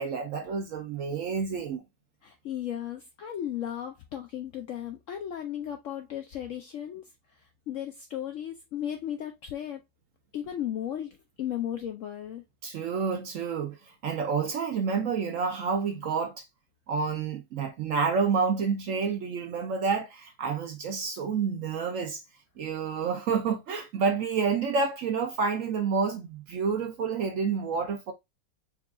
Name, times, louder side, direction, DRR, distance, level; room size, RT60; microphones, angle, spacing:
voice 1, 0.0-1.8 12.6-13.8 14.0-16.5 16.9-22.2 22.6-28.1, right 5 dB, 65° right, 0.8 m, -29 dB
voice 2, 2.2-7.0 7.7-9.8 10.3-12.4, left 10 dB, 70° left, 0.7 m, -35 dB
4.7 x 2.3 x 3.5 m
omnidirectional pair, 1.8 m